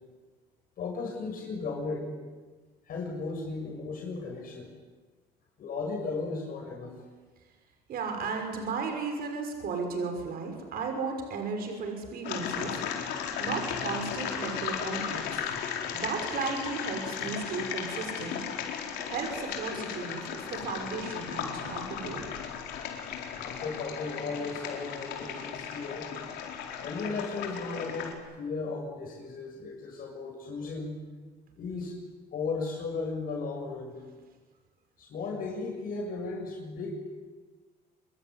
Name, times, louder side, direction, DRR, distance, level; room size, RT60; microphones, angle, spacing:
voice 1, 0.8-2.1 2.9-4.7 5.6-6.9 23.4-26.0 26.8-31.0 31.6-32.0 32.3-33.9 35.0-36.9, left 4 dB, 55° left, 0 dB, 6.8 m, -35 dB
voice 2, 7.9-12.8 13.4-15.3 15.9-18.4 19.1-22.3, right 4 dB, 65° right, 4 dB, 6.1 m, -34 dB
sound 1, 12.2-28.1, left 8 dB, 90° left, 4.4 m, -36 dB
26.5 x 23.0 x 9.8 m, 1.4 s
cardioid pair, 110°, 17 cm